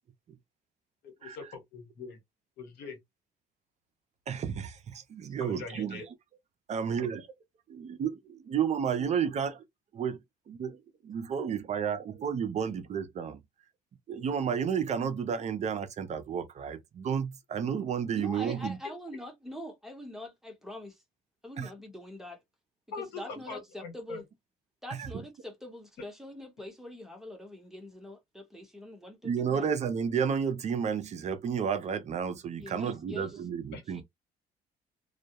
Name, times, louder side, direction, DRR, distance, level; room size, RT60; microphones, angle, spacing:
voice 1, 1.0-2.2 2.6-3.0 5.4-6.1 22.9-24.2 33.7-33.8, left 4 dB, 80° left, 1.2 m, -42 dB
voice 2, 4.3-6.0 6.7-7.3 7.7-9.6 9.9-10.2 10.5-10.8 11.1-13.4 14.1-18.8 21.6-21.7 25.0-25.2 29.2-34.0, right 7 dB, 40° right, 0.5 m, -31 dB
voice 3, 18.1-21.0 21.4-22.4 23.0-24.2 24.8-29.7 32.6-33.4 33.9-34.0, left 1 dB, ahead, 0.8 m, -44 dB
2.2 x 2.0 x 2.8 m
cardioid pair, 110°, 17 cm